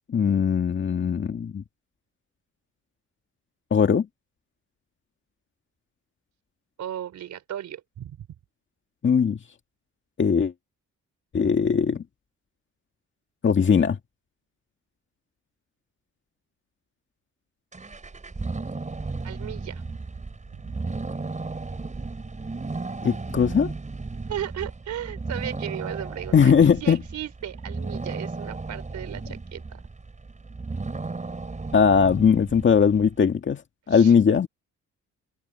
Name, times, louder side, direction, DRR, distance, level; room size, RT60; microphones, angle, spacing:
voice 1, 0.1-1.6 3.7-4.1 9.0-9.4 10.2-10.5 11.3-12.0 13.4-14.0 23.0-23.7 26.3-27.0 31.7-33.6 33.9-34.5, left 6 dB, 40° left, 1.9 m, -19 dB
voice 2, 6.8-8.3 19.2-20.0 20.5-20.6 24.3-29.8 33.9-34.1, right 11 dB, 70° right, 4.2 m, -36 dB
sound 1, 17.7-33.1, right 3 dB, 25° right, 4.6 m, -35 dB
open air
cardioid pair, 90°, 30 cm